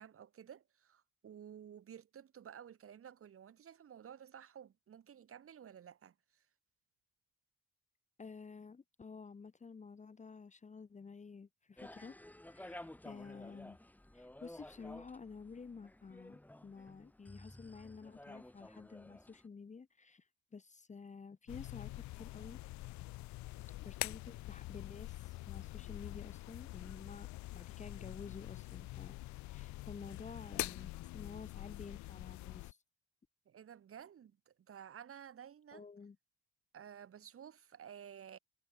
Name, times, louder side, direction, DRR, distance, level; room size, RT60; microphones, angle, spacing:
voice 1, 0.0-6.4 33.4-35.9 36.7-38.4, right 9 dB, 50° right, 1.5 m, -53 dB
voice 2, 8.2-12.2 12.5-13.8 14.1-20.3 20.5-22.6 23.8-27.3 27.5-29.1 29.5-32.8 35.7-36.2, left 5 dB, 25° left, 0.8 m, -51 dB
sound 1, 11.8-19.5, left 1 dB, 5° left, 1.2 m, -54 dB
sound 2, 21.5-32.7, left 19 dB, 75° left, 0.5 m, -45 dB
supercardioid pair, 75°, 29 cm